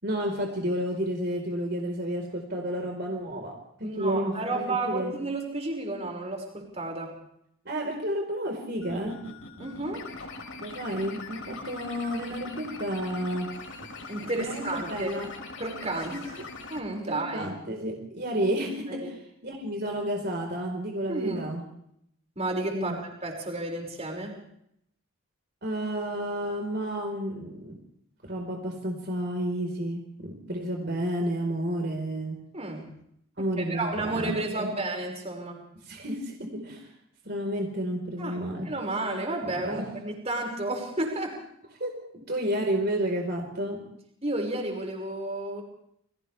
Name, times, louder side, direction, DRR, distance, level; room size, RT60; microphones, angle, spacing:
voice 1, 0.0-4.3 4.6-5.1 7.6-9.2 10.6-13.5 14.3-15.3 16.1-16.2 17.1-19.1 19.4-21.6 22.7-23.0 25.6-27.8 28.2-32.4 33.4-34.7 35.8-36.9 37.2-38.7 39.6-39.8 41.8-43.9, right 1 dB, 50° right, 2 dB, 4.6 m, -31 dB
voice 2, 3.8-7.2 9.6-10.1 14.1-15.1 15.6-16.3 16.7-17.5 18.9-19.1 21.1-21.4 22.4-24.4 32.5-32.9 33.4-35.6 38.2-38.4 38.6-41.4 44.2-45.6, right 2 dB, 30° right, 2 dB, 6.0 m, -32 dB
sound 1, 8.8-16.8, left 3 dB, 65° left, 4.8 m, -41 dB
30.0 x 25.0 x 3.5 m, 0.72 s
head